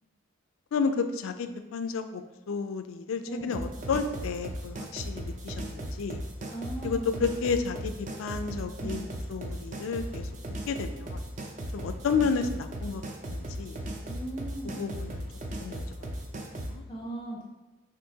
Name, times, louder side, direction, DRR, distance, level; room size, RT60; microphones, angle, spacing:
voice 1, 0.7-6.2 6.8-10.3 10.7-11.2 11.7-13.0 13.3-13.8 14.6-15.2 15.6-15.8 16.4-16.8, left 5 dB, 85° left, 8 dB, 0.4 m, -31 dB
voice 2, 3.2-3.6 6.5-7.2 8.8-8.9 14.1-14.8 16.9-17.4, right 1 dB, 25° left, -2 dB, 0.5 m, -38 dB
sound 1, 3.5-16.8, right 1 dB, 35° right, 0.4 m, -37 dB
6.3 x 2.6 x 2.8 m, 1.1 s
head